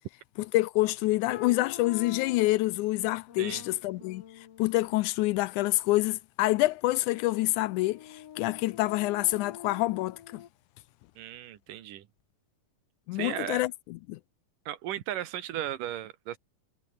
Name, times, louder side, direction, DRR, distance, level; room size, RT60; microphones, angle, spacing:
voice 1, 0.5-4.2 4.6-10.4 13.1-14.2, left 18 dB, 80° left, 1.9 m, -27 dB
sound 1, 1.3-2.7 3.3-5.0 7.1-10.5, left 10 dB, 55° left, 2.2 m, -47 dB
voice 2, 11.2-12.1 13.1-13.6 14.7-16.4, right 12 dB, 85° right, 3.0 m, -36 dB
omnidirectional pair, 3.7 m